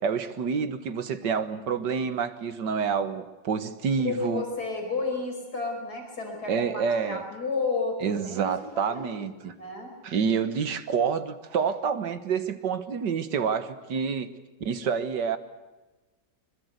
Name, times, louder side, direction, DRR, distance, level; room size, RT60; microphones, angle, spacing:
voice 1, 0.0-4.4 6.5-7.2 8.0-9.5 10.0-14.3 14.6-15.4, right 6 dB, 80° right, 11 dB, 2.0 m, -28 dB
voice 2, 4.0-9.9, left 3 dB, 60° left, 3 dB, 6.0 m, -32 dB
24.5 x 22.0 x 8.1 m, 1.1 s
omnidirectional pair, 1.9 m